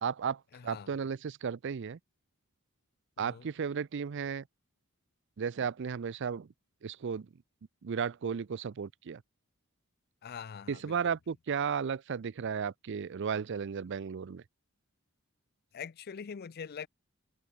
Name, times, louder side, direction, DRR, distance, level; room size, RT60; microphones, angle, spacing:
voice 1, 0.0-2.0 3.2-4.4 5.4-6.5 6.8-7.3 7.8-9.2 10.7-14.4, right 6 dB, 55° right, 0.4 m, -34 dB
voice 2, 0.5-0.9 3.2-3.5 10.2-11.1 15.7-16.9, left 6 dB, 45° left, 0.4 m, -43 dB
head